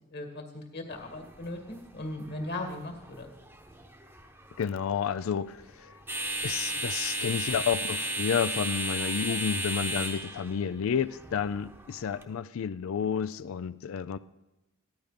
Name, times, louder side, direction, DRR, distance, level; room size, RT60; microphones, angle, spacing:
voice 1, 0.1-3.3, left 2 dB, 50° left, 3 dB, 2.1 m, -38 dB
sound 1, 0.9-12.2, right 1 dB, 10° right, 0.9 m, -35 dB
voice 2, 4.6-5.9 6.4-14.2, left 7 dB, 75° left, 14 dB, 0.4 m, -30 dB
14.5 x 11.0 x 5.1 m, 0.97 s
head